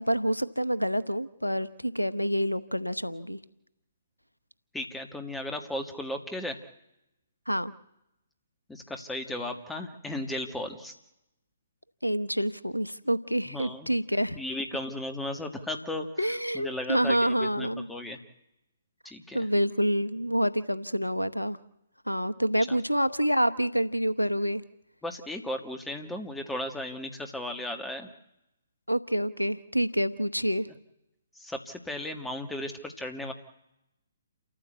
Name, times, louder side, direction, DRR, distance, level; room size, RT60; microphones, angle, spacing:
voice 1, 0.0-3.4 7.5-7.7 12.0-14.4 16.2-17.9 19.3-21.6 22.1-24.6 28.9-30.7, equal, 90° left, 16 dB, 0.9 m, -27 dB
voice 2, 4.7-6.6 8.7-10.9 13.5-13.9 14.4-16.1 16.5-18.2 19.1-19.4 25.0-28.1 31.4-33.3, left 1 dB, 5° left, 6 dB, 1.9 m, -35 dB
28.5 x 14.0 x 8.1 m, 0.89 s
figure-of-eight pair, 130°, 0 cm